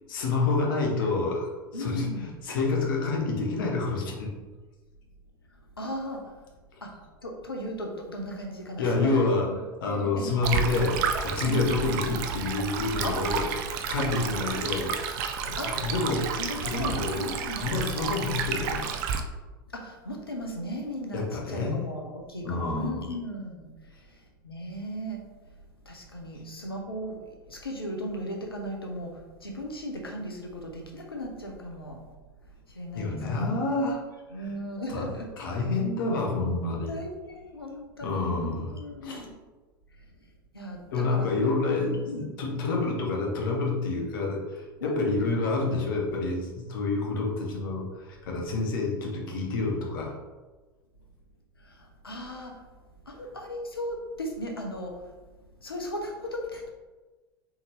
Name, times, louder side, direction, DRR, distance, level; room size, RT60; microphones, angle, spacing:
voice 1, 0.1-1.5 1.8-4.3 8.8-9.5 9.8-13.5 13.9-15.1 15.5-19.0 21.1-21.8 22.4-23.1 32.9-34.0 34.4-34.5 34.9-35.1 35.4-37.0 38.0-38.7 39.0-39.3 40.9-50.2, left 3 dB, 65° left, 0 dB, 1.0 m, -28 dB
voice 2, 1.7-2.3 5.8-6.4 6.8-6.9 7.2-9.1 9.5-9.6 9.8-10.3 11.4-11.6 13.0-13.4 14.0-14.7 15.6-15.8 16.4-17.6 19.7-25.2 25.8-32.0 32.7-33.7 34.3-35.3 36.9-39.3 39.9-40.0 40.5-41.3 41.8-42.2 44.8-45.1 51.6-52.6 53.1-55.1 55.6-56.7, equal, 85° left, 1 dB, 0.8 m, -37 dB
Stream, 10.4-19.2, right 6 dB, 50° right, 0.5 m, -31 dB
4.1 x 3.6 x 3.2 m, 1.2 s
figure-of-eight pair, 80°, 12 cm